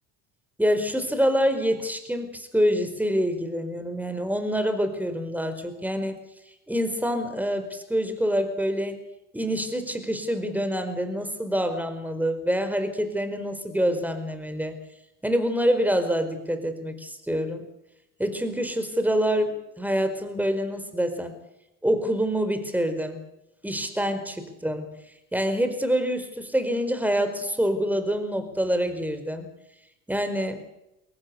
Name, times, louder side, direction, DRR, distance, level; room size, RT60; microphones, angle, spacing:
voice 1, 0.6-6.2 6.7-9.0 9.3-14.7 15.2-17.6 18.2-21.4 21.8-23.2 23.6-24.9 25.3-29.5 30.1-30.6, equal, 5° right, 9 dB, 4.7 m, -26 dB
23.0 x 18.5 x 7.1 m, 0.88 s
hypercardioid pair, 70°, 45 cm